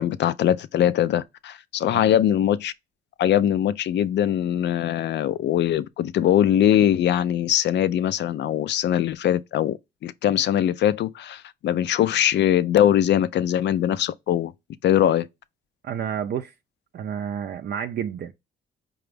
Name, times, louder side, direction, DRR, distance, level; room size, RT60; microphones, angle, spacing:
voice 1, 0.0-2.7 3.2-9.8 10.0-14.5 14.8-15.3, left 11 dB, 60° left, 0.4 m, -21 dB
voice 2, 15.8-16.5 16.9-18.3, right 8 dB, 55° right, 0.4 m, -30 dB
5.0 x 2.3 x 3.3 m
cardioid pair, 90°, 20 cm